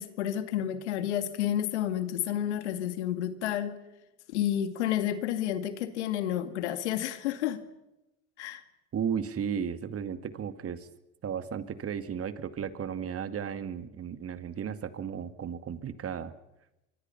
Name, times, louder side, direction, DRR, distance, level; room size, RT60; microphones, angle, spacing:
voice 1, 0.0-3.8 4.3-7.6 8.4-8.6, left 11 dB, 90° left, 11 dB, 2.1 m, -30 dB
voice 2, 8.9-10.9 11.2-16.3, right 7 dB, 45° right, 11 dB, 2.1 m, -34 dB
25.5 x 23.5 x 5.8 m, 0.93 s
hypercardioid pair, 75°, 33 cm